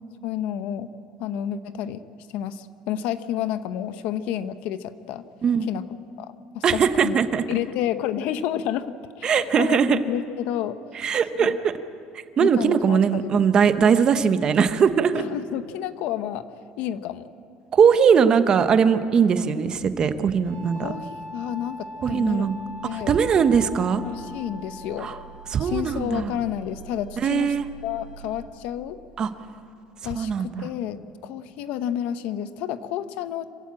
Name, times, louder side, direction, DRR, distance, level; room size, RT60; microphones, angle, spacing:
voice 1, 0.2-0.9 1.2-2.0 2.3-5.2 5.7-5.8 6.2-7.2 7.5-10.8 11.4-11.6 12.4-13.3 13.8-13.9 15.1-16.5 16.8-17.2 20.7-22.5 22.8-23.2 24.0-25.1 25.6-27.5 27.8-29.0 30.0-33.5, left 10 dB, 65° left, 12 dB, 0.8 m, -30 dB
voice 2, 6.6-7.4 9.2-10.0 10.9-11.5 12.4-15.2 17.7-20.9 22.0-22.5 22.9-24.0 25.0-25.2 25.5-26.3 27.2-27.6 29.2-29.3 30.1-30.7, right 6 dB, 30° right, 10 dB, 1.0 m, -20 dB
sound 1, 20.4-28.4, right 1 dB, 80° left, 6.7 m, -41 dB
26.5 x 15.0 x 8.7 m, 2.5 s
cardioid pair, 165°, 3 cm